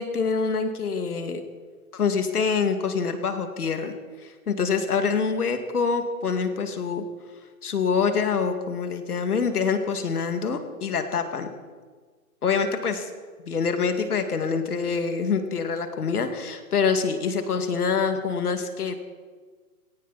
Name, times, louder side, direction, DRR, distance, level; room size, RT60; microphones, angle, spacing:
voice 1, 0.0-1.4 1.9-3.9 4.2-7.0 7.6-11.5 12.4-13.1 13.5-19.0, left 5 dB, 85° left, 7 dB, 2.4 m, -25 dB
18.5 x 17.5 x 4.2 m, 1.5 s
hypercardioid pair, 150°, 44 cm